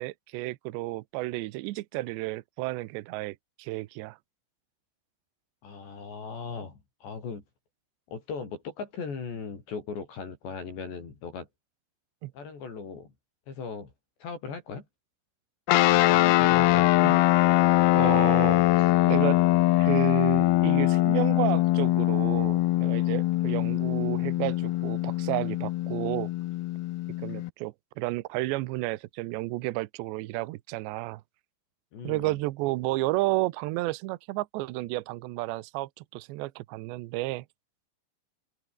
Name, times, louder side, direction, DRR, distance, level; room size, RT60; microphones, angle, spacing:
voice 1, 0.0-4.2 12.2-12.3 17.0-17.2 17.9-19.4 19.8-26.3 27.2-31.2 32.0-37.5, right 19 dB, 80° right, 2.6 m, -32 dB
voice 2, 5.6-7.4 8.1-11.5 12.3-13.1 13.5-13.9 14.2-14.8 16.1-16.9 31.9-32.4, left 5 dB, 55° left, 7.6 m, -38 dB
sound 1, 15.7-27.5, left 16 dB, 90° left, 2.2 m, -23 dB
omnidirectional pair, 5.9 m